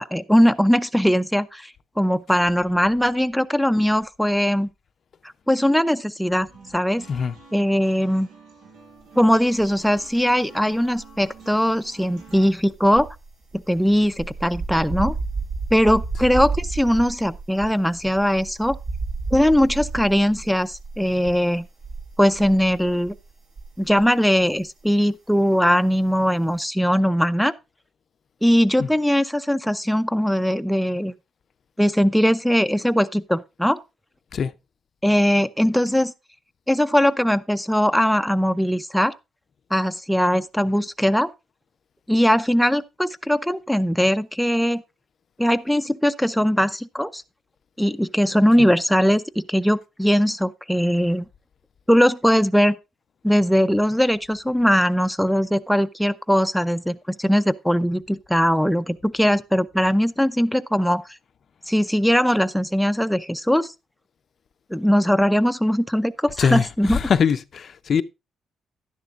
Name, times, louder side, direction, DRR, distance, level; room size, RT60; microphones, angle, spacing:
voice 1, 0.0-1.7 2.0-4.7 5.5-6.5 6.7-7.0 7.5-8.3 9.2-13.1 13.5-15.1 15.7-18.8 19.3-21.7 22.2-23.1 23.8-27.5 28.4-31.1 31.8-33.8 35.0-36.1 36.7-39.1 39.7-41.3 42.1-44.8 45.4-47.2 47.8-51.2 51.9-52.8 53.2-61.0 61.7-63.7 64.7-67.0, equal, ahead, 0.6 m, -20 dB
sound 1, 6.5-12.5, right 4 dB, 80° right, 5.6 m, -48 dB
sound 2, 9.5-10.3 10.6-24.1 24.4-24.7, right 3 dB, 60° right, 4.9 m, -32 dB
voice 2, 66.4-68.0, left 6 dB, 55° left, 0.6 m, -22 dB
11.5 x 10.5 x 2.5 m
cardioid pair, 90°, 0 cm